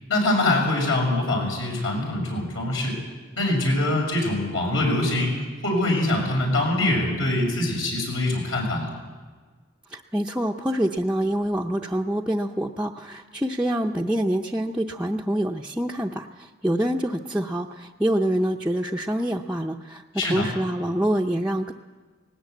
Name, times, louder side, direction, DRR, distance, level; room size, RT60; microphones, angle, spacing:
voice 1, 0.1-2.9 3.4-5.3 5.6-8.9 20.2-20.5, left 1 dB, 80° left, 0 dB, 6.6 m, -23 dB
voice 2, 9.9-20.0 20.3-21.7, right 1 dB, 5° right, -2 dB, 0.6 m, -26 dB
19.5 x 18.0 x 8.3 m, 1.4 s
head